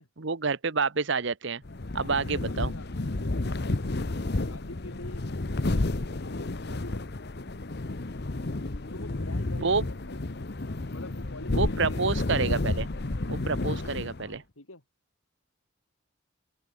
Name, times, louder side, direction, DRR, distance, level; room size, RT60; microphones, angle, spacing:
voice 1, 0.2-1.6 1.9-2.7 9.6-9.8 11.5-12.9 13.3-14.4, right 4 dB, 60° right, 1.0 m, -28 dB
sound 1, 1.6-14.4, left 2 dB, 50° left, 1.0 m, -31 dB
voice 2, 1.9-7.5 8.9-10.5 10.9-12.1 13.6-13.9 14.2-14.8, left 2 dB, 80° left, 5.5 m, -47 dB
open air
head